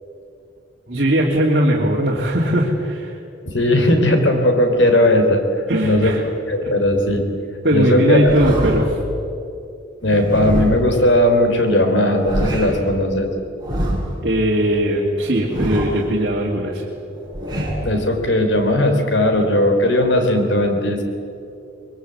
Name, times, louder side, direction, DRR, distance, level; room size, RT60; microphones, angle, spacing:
voice 1, 0.9-3.2 5.7-6.2 6.6-6.7 7.6-9.0 14.2-16.8, right 1 dB, 50° right, -4 dB, 3.0 m, -19 dB
voice 2, 3.5-5.4 5.8-7.2 7.7-8.4 10.0-13.3 17.8-21.0, left 1 dB, 75° left, 5 dB, 3.8 m, -17 dB
sound 1, 8.3-9.0 10.0-11.0 12.0-12.9 13.6-14.2 15.2-16.1 17.1-17.9, equal, 20° right, 6.4 m, -24 dB
24.0 x 22.0 x 8.2 m, 2.6 s
head